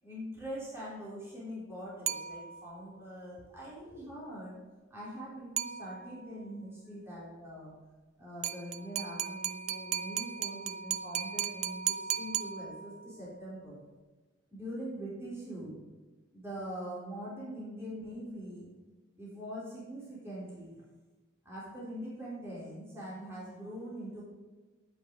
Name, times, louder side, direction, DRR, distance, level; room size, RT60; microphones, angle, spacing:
voice 1, 0.0-4.6 4.9-7.7 8.2-13.8 14.5-15.8 16.3-18.7 19.2-20.8 21.4-24.2, equal, 10° right, -8 dB, 3.5 m, -43 dB
sound 1, 2.1-2.8 5.6-6.3 8.4-13.1, right 10 dB, 35° right, 0.3 m, -36 dB
9.9 x 9.0 x 3.8 m, 1.3 s
head